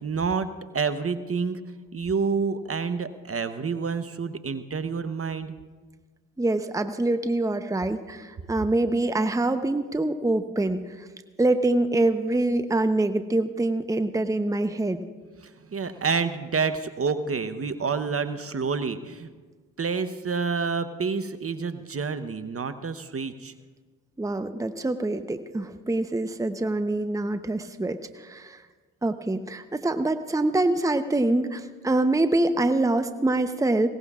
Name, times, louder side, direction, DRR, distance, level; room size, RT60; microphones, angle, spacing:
voice 1, 0.0-1.6 1.9-5.5 15.4-19.3 19.8-23.5, right 5 dB, 35° right, 11 dB, 1.0 m, -28 dB
voice 2, 6.4-11.1 11.4-15.0 24.2-28.6 29.0-33.9, right 2 dB, 10° right, 9 dB, 0.8 m, -25 dB
21.0 x 18.0 x 2.5 m, 1.4 s
hypercardioid pair, 45°, 38 cm